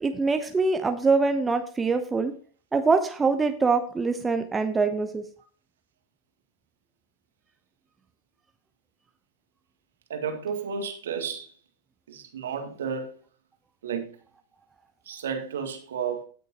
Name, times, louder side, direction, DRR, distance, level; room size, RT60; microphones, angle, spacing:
voice 1, 0.0-2.3 2.7-5.2, right 4 dB, 15° right, 0.8 m, -24 dB
voice 2, 10.1-11.5 12.1-13.2 13.8-14.1 15.1-16.2, right 6 dB, 65° right, 1.9 m, -32 dB
16.5 x 6.5 x 2.9 m
figure-of-eight pair, 90°, 0 cm